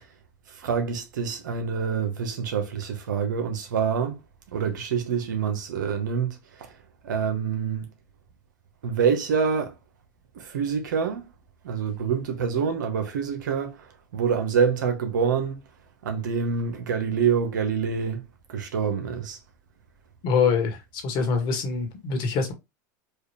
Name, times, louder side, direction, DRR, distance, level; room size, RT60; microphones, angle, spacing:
voice 1, 0.5-4.2 4.5-6.7 7.0-7.9 8.8-9.7 10.3-11.3 11.6-15.6 16.0-19.4, right 6 dB, 90° right, 1.1 m, -26 dB
voice 2, 20.2-20.8 21.0-22.5, left 5 dB, 55° left, 1.6 m, -24 dB
4.8 x 2.5 x 3.3 m
hypercardioid pair, 100°, 10 cm